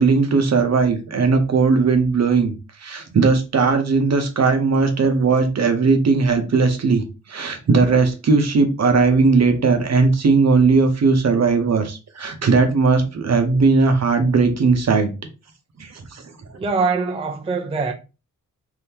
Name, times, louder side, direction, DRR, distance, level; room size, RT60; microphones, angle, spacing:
voice 1, 0.0-2.5 2.8-15.1 15.8-16.2, right 4 dB, 50° right, 0.8 m, -18 dB
voice 2, 16.5-17.9, right 4 dB, 20° right, 0.4 m, -23 dB
3.6 x 2.6 x 2.8 m
wide cardioid pair, 130°, 33 cm